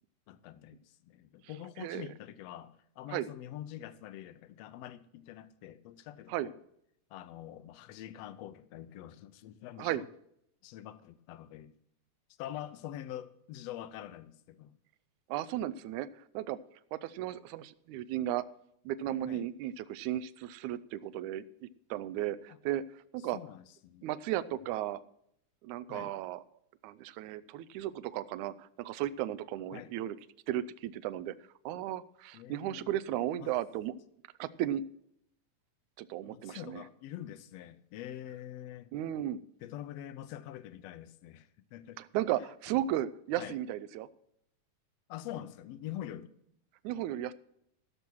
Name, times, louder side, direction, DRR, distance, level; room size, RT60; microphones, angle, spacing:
voice 1, 0.3-6.6 7.1-10.1 10.6-11.7 12.4-14.7 19.3-19.5 23.3-24.1 25.9-26.1 29.7-29.9 32.3-33.0 33.4-33.5 36.3-38.9 39.6-42.0 43.4-43.6 45.1-46.3, left 12 dB, 75° left, 1.6 m, -45 dB
voice 2, 15.3-16.6 16.9-18.5 18.9-22.8 23.1-23.4 24.0-25.0 25.6-26.4 26.8-30.2 30.5-31.3 31.7-33.9 34.4-34.8 36.0-36.8 38.9-39.4 42.0-44.1 46.8-47.3, right 12 dB, 80° right, 1.9 m, -35 dB
15.5 x 7.0 x 6.0 m
omnidirectional pair, 3.6 m